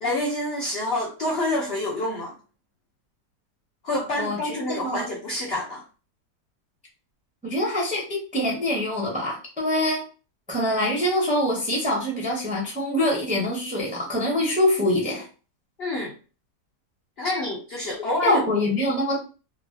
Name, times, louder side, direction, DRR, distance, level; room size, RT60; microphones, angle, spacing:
voice 1, 0.0-2.3 3.8-5.8 15.8-16.1 17.2-18.4, left 1 dB, 65° left, 0.6 m, -27 dB
voice 2, 4.2-5.1 7.4-10.0 10.5-15.2 18.2-19.2, left 1 dB, 10° right, 0.6 m, -24 dB
3.0 x 2.3 x 2.5 m
omnidirectional pair, 1.8 m